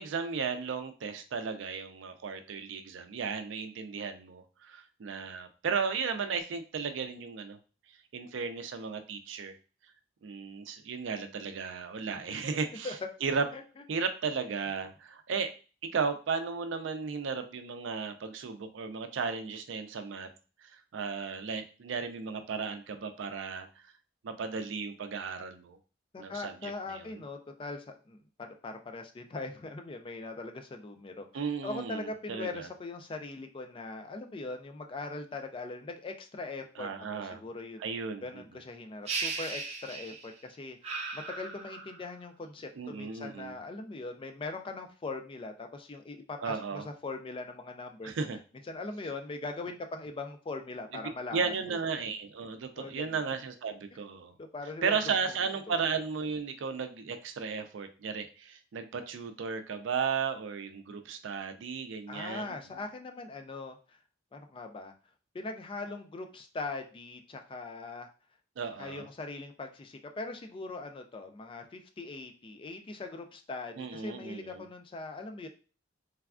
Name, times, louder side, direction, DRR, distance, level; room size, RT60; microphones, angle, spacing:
voice 1, 0.0-7.6 8.1-9.6 10.2-13.4 13.9-15.5 15.8-20.3 20.6-23.8 24.2-25.8 26.2-27.2 31.3-32.7 36.8-37.4 37.8-38.3 42.8-43.5 46.4-46.9 48.0-48.4 50.9-54.3 54.8-62.6 68.6-69.0 73.8-74.6, right 5 dB, 70° right, 8 dB, 0.4 m, -35 dB
voice 2, 26.1-31.3 31.6-37.8 38.2-48.1 48.7-51.4 51.7-52.1 52.8-53.2 54.4-55.0 55.7-55.8 62.1-64.0 64.3-64.9 65.3-68.1 68.8-75.5, left 3 dB, 25° left, 5 dB, 0.3 m, -41 dB
sound 1, 39.1-40.4 40.8-42.1, right 4 dB, 35° right, 0.7 m, -37 dB
3.3 x 2.2 x 2.4 m, 0.35 s
head